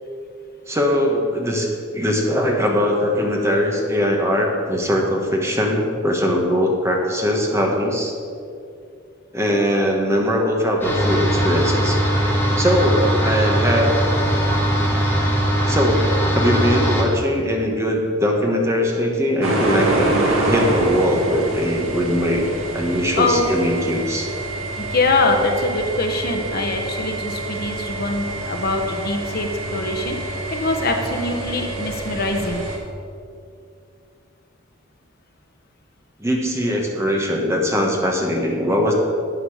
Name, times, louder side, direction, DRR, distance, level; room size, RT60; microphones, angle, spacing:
voice 1, 0.7-1.7 1.9-8.1 9.3-12.0 12.6-14.0 15.7-16.0 16.3-20.2 20.5-22.5 22.7-24.3 36.2-38.9, equal, 15° right, 0 dB, 1.3 m, -21 dB
sound 1, 10.8-17.0, right 1 dB, 10° left, 1.8 m, -20 dB
sound 2, 19.4-32.8, right 2 dB, 80° right, 2.0 m, -26 dB
voice 2, 23.2-23.5 24.8-32.6, left 2 dB, 45° left, 4 dB, 1.0 m, -23 dB
12.0 x 8.6 x 4.9 m, 2.4 s
head